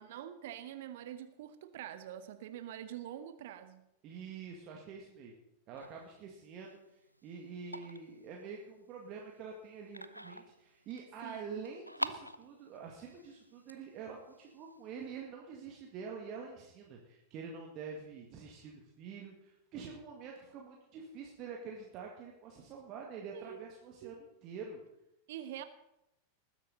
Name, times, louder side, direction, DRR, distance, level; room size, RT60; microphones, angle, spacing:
voice 1, 0.0-3.8 11.2-11.4 23.3-23.7 24.0-24.2 25.3-25.6, right 11 dB, 55° right, 12 dB, 0.8 m, -45 dB
voice 2, 4.0-5.3 5.7-6.8 7.2-24.8, right 5 dB, 35° right, 0 dB, 2.0 m, -46 dB
sound 1, 5.8-15.2, equal, 90° right, 0.6 m, -47 dB
19.5 x 10.0 x 4.1 m, 0.85 s
figure-of-eight pair, 90°, 0 cm